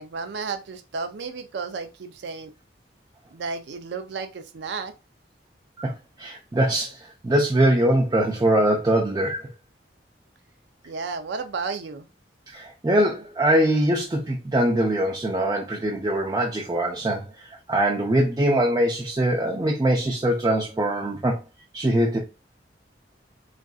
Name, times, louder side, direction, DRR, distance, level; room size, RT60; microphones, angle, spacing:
voice 1, 0.0-2.5 3.3-4.9 10.9-12.1, right 4 dB, 80° right, 0.4 m, -33 dB
voice 2, 6.2-9.5 12.5-21.4 21.7-22.2, right 1 dB, 20° right, 0.4 m, -22 dB
3.7 x 2.4 x 2.3 m
head